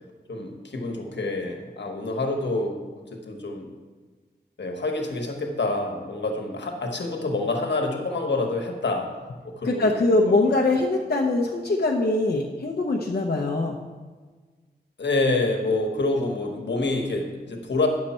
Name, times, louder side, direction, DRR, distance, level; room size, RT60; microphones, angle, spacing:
voice 1, 0.3-2.8 3.1-3.7 4.6-9.1 9.4-10.5 15.0-17.9, left 2 dB, 85° left, 2 dB, 1.2 m, -27 dB
voice 2, 9.6-13.7, left 2 dB, 60° left, -1 dB, 0.8 m, -22 dB
10.0 x 6.5 x 4.3 m, 1.4 s
wide cardioid pair, 65°, 18 cm